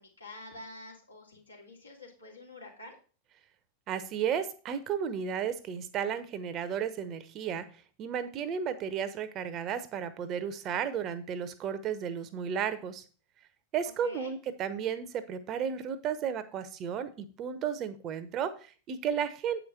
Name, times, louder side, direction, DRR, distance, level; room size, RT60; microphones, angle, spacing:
voice 1, 0.0-3.0 14.0-14.4, left 2 dB, 85° left, -3 dB, 2.7 m, -48 dB
voice 2, 3.9-7.6 8.0-13.0 13.7-19.7, right 8 dB, 35° right, 12 dB, 0.9 m, -33 dB
8.5 x 5.2 x 4.5 m, 0.38 s
figure-of-eight pair, 90°, 0 cm